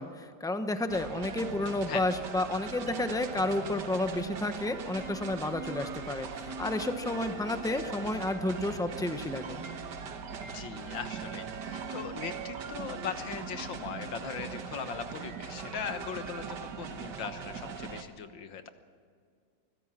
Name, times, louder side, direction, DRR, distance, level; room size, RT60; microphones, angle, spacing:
voice 1, 0.0-9.6, left 2 dB, 5° left, 8 dB, 0.5 m, -31 dB
sound 1, 0.9-18.0, right 5 dB, 65° right, 1.8 m, -40 dB
voice 2, 10.4-18.7, left 7 dB, 80° left, 9 dB, 2.0 m, -39 dB
24.0 x 16.0 x 7.6 m, 2.2 s
omnidirectional pair, 2.0 m